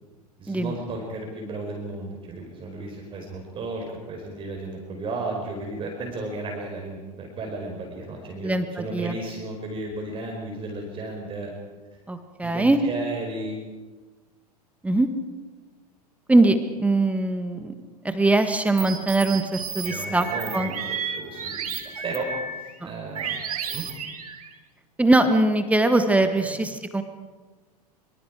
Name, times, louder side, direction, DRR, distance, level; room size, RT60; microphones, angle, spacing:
voice 1, 0.4-8.5 8.8-11.5 12.4-13.7 19.8-21.7 22.0-22.3 22.6-23.4 23.7-23.8 26.4-26.6, right 2 dB, 25° right, 1 dB, 4.7 m, -34 dB
voice 2, 8.4-9.2 12.1-12.8 14.8-15.1 16.3-17.7 18.0-20.3 20.5-20.7 22.8-22.9 25.0-27.0, right 2 dB, 5° right, 8 dB, 1.7 m, -21 dB
sound 1, 18.8-22.7 23.1-24.5, right 6 dB, 65° right, 3.0 m, -32 dB
25.5 x 25.0 x 4.9 m, 1.3 s
figure-of-eight pair, 90°, 21 cm